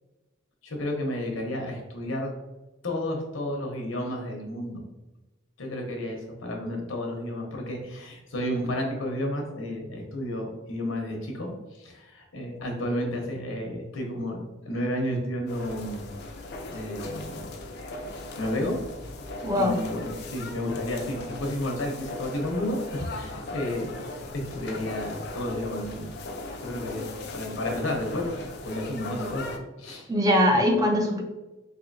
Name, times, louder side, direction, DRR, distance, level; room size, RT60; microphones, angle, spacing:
voice 1, 0.6-2.3 2.8-4.8 5.6-16.1 16.7-17.5 18.4-19.1 19.6-23.9 24.5-26.1 26.6-27.0 27.3-30.1, left 1 dB, 80° left, 1 dB, 0.9 m, -32 dB
sound 1, 15.5-29.6, left 2 dB, 55° left, 0.5 m, -38 dB
voice 2, 19.4-19.8 30.1-31.2, left 1 dB, 20° right, 2 dB, 0.4 m, -21 dB
4.3 x 2.7 x 2.6 m, 1.1 s
head